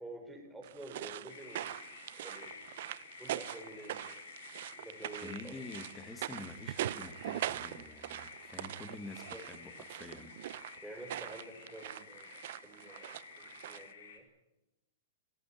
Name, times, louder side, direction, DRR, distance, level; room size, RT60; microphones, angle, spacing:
voice 1, 0.0-1.7 2.1-2.5 3.2-4.2 4.8-5.6 9.3-9.4 10.8-14.2, right 1 dB, 5° right, 1 dB, 6.0 m, -49 dB
sound 1, 0.6-13.9, right 13 dB, 60° right, 0.9 m, -42 dB
sound 2, 1.3-14.2, left 6 dB, 75° left, 4.2 m, -52 dB
voice 2, 5.2-10.4, left 3 dB, 15° left, 10 dB, 2.1 m, -48 dB
27.5 x 15.0 x 9.3 m, 0.92 s
hypercardioid pair, 135°, 0 cm